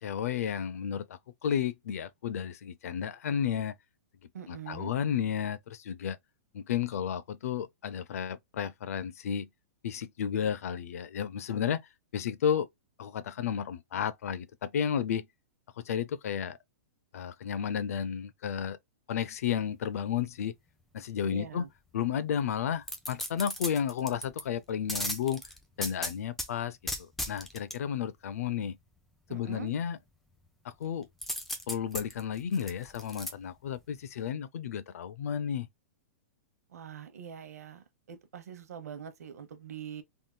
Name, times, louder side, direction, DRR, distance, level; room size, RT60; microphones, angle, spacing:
voice 1, 0.0-3.7 4.5-6.2 6.5-9.5 9.8-12.7 13.0-15.3 15.8-16.6 17.1-18.8 19.1-20.5 20.9-21.7 21.9-25.4 25.8-28.8 29.3-30.0 30.6-31.1 31.7-35.7, left 8 dB, 70° left, 0.5 m, -32 dB
voice 2, 4.3-4.9 21.2-21.7 29.3-29.7 36.7-40.0, right 8 dB, 85° right, 0.9 m, -43 dB
sound 1, 22.9-24.4 24.9-26.5 26.9-27.8 31.2-33.3 33.8-33.9, left 1 dB, 5° left, 0.5 m, -36 dB
3.5 x 2.6 x 2.3 m
hypercardioid pair, 155°, 8 cm